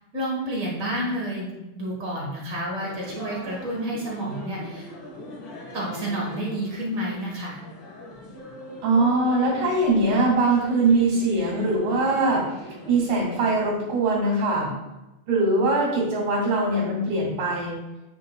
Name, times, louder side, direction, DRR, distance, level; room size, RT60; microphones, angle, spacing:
voice 1, 0.1-4.9 5.7-7.6, right 1 dB, 50° right, -4 dB, 1.0 m, -30 dB
sound 1, 2.8-14.0, left 1 dB, 50° left, 1.7 m, -41 dB
voice 2, 8.8-14.7 15.3-17.8, right 2 dB, 85° right, -6 dB, 3.7 m, -22 dB
10.0 x 5.5 x 2.3 m, 1.0 s
omnidirectional pair, 3.6 m